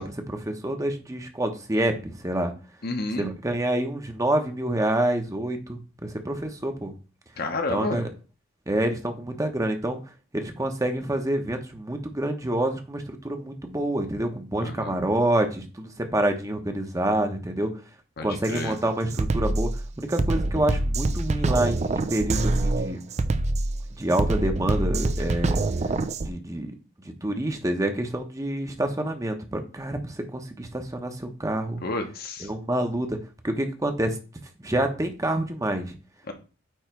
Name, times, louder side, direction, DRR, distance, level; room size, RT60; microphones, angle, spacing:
voice 1, 0.0-2.5 3.2-6.9 7.7-8.1 8.7-10.0 10.3-17.7 18.2-19.7 20.0-23.0 24.0-25.6 26.2-26.7 27.2-31.8 32.4-33.2 33.4-34.2 34.6-35.9, right 1 dB, 15° right, 5 dB, 0.9 m, -27 dB
voice 2, 2.8-3.3 7.4-8.0 14.6-15.0 18.2-18.8 31.8-32.5 36.3-36.4, left 2 dB, 50° left, 5 dB, 1.1 m, -30 dB
Drum kit, 18.4-18.6 19.1-26.3, right 2 dB, 35° right, 0.4 m, -25 dB
9.1 x 3.2 x 4.5 m, 0.34 s
head